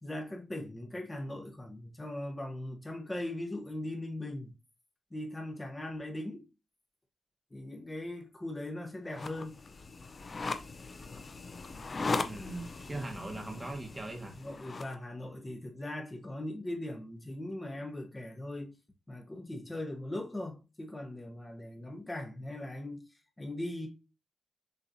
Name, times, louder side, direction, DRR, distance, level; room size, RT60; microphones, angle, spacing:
voice 1, 0.0-4.5 5.1-6.4 7.5-9.6 12.9-13.1 14.4-18.7 19.1-23.0 23.4-23.9, left 1 dB, 15° left, 0.9 m, -39 dB
sound 1, 9.1-14.9, left 3 dB, 30° left, 0.5 m, -39 dB
voice 2, 12.2-14.4, right 2 dB, 15° right, 1.1 m, -40 dB
6.4 x 3.1 x 2.7 m
wide cardioid pair, 150°, 0 cm